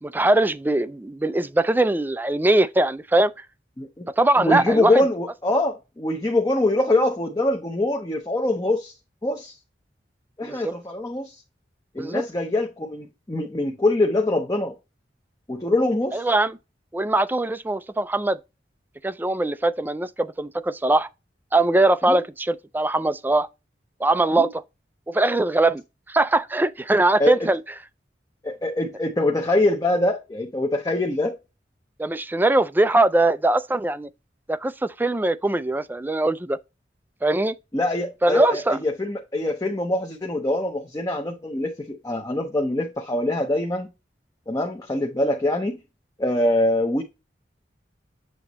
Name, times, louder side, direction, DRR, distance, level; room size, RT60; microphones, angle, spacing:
voice 1, 0.0-3.3 4.2-4.9 10.4-10.7 12.0-12.2 16.1-16.5 16.9-18.4 19.0-21.1 21.5-23.5 24.0-24.6 25.1-25.8 26.1-27.6 32.0-34.1 34.5-36.6 37.2-37.5 38.2-38.8, right 2 dB, 10° right, 0.3 m, -21 dB
voice 2, 3.8-4.1 4.4-8.9 9.2-9.5 10.4-11.4 11.9-14.7 15.5-16.3 22.0-22.2 24.3-24.5 27.2-27.4 28.4-31.4 37.7-43.9 44.5-45.8 46.2-47.0, left 1 dB, 20° left, 0.8 m, -24 dB
7.8 x 2.9 x 4.1 m
head